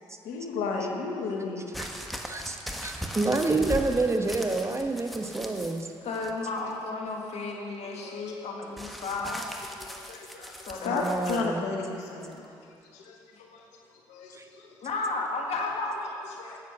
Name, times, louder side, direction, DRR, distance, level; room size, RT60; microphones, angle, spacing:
voice 1, 0.2-1.7 2.6-2.8 5.8-5.9 7.8-8.3 9.8-12.5 12.9-13.6 13.9-14.7 16.4-16.6, left 4 dB, 85° left, 1 dB, 1.1 m, -34 dB
sound 1, 1.7-5.8 6.1-6.7 8.8-11.5 12.3-12.4, equal, ahead, 1.3 m, -39 dB
voice 2, 2.3-5.9 10.8-11.7 14.3-14.5, right 3 dB, 25° right, 4 dB, 1.2 m, -28 dB
voice 3, 6.0-9.5 10.6-10.9 13.3-13.4 14.8-16.3, left 3 dB, 70° left, 0 dB, 1.7 m, -33 dB
9.8 x 8.1 x 6.4 m, 2.5 s
hypercardioid pair, 45°, 12 cm